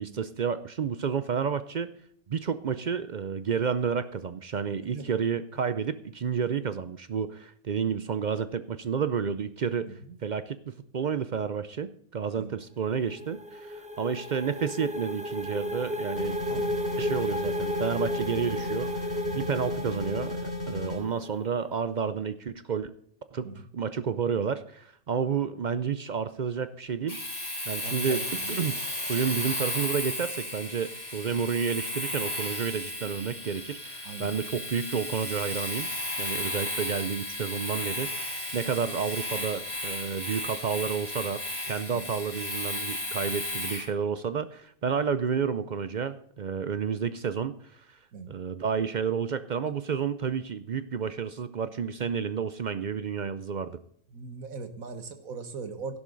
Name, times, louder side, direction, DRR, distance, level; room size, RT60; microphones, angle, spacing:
voice 1, 0.0-1.9 2.3-16.4 17.0-22.9 23.3-27.2 27.7-35.9 36.2-41.4 41.7-48.0 48.3-53.8, right 6 dB, 60° right, 13 dB, 0.5 m, -30 dB
sound 1, 12.8-21.5, equal, 5° right, 0.8 m, -34 dB
sound 2, 16.2-21.0, left 2 dB, 45° left, 2.9 m, -35 dB
Domestic sounds home sounds, 27.1-43.9, left 1 dB, 15° left, 3.4 m, -34 dB
voice 2, 27.8-28.6 34.0-34.3 41.9-42.0 48.1-48.3 54.1-56.0, right 4 dB, 80° right, 9 dB, 1.8 m, -40 dB
12.5 x 11.0 x 3.9 m, 0.65 s
omnidirectional pair, 1.4 m